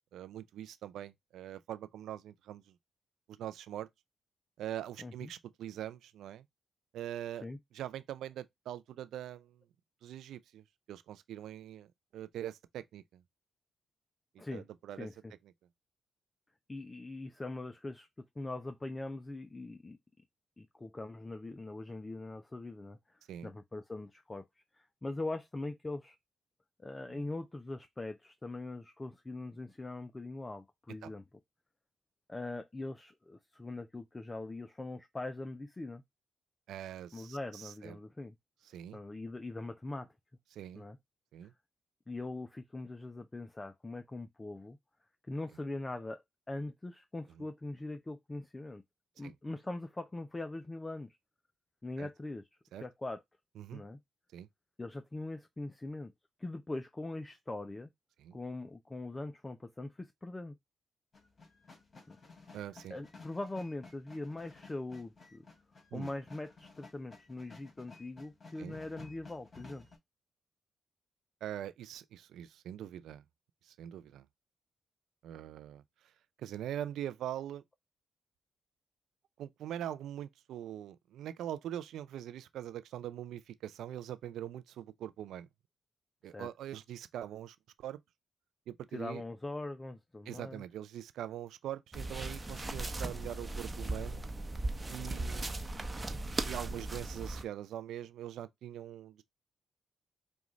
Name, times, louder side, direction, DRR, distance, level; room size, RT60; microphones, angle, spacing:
voice 1, 0.1-2.8 3.3-3.9 4.6-6.4 6.9-7.4 7.7-9.6 10.0-13.2 14.3-15.1 23.3-23.5 27.1-27.3 31.0-31.1 36.7-38.0 38.7-39.0 40.5-40.8 41.3-41.5 47.4-47.5 49.2-49.3 52.0-52.1 52.7-52.8 53.6-53.8 54.3-54.5 58.2-58.4 62.5-63.0 65.9-66.1 68.6-68.8 71.4-73.2 73.6-74.3 75.2-75.8 76.4-77.6 79.4-85.5 86.2-88.0 88.7-89.2 90.3-94.3 94.9-95.6 96.4-99.2, right 11 dB, 80° right, 0.4 m, -43 dB
voice 2, 5.0-5.3 7.4-7.6 14.4-14.6 15.0-15.3 16.7-18.1 18.4-20.0 20.6-24.5 24.7-26.2 26.8-31.2 32.3-36.0 37.1-38.3 38.9-40.1 40.7-41.0 42.1-44.8 45.3-48.8 49.2-51.2 51.8-52.5 52.8-53.2 53.7-54.0 54.8-56.1 56.4-57.9 58.3-60.6 62.1-62.2 62.9-65.4 65.9-69.9 86.2-86.5 88.9-90.6, left 2 dB, 25° left, 0.5 m, -42 dB
sound 1, 61.1-70.0, left 4 dB, 45° left, 2.7 m, -55 dB
sound 2, 91.9-97.4, right 2 dB, 30° right, 0.9 m, -38 dB
5.1 x 2.4 x 3.1 m
supercardioid pair, 55°, 0 cm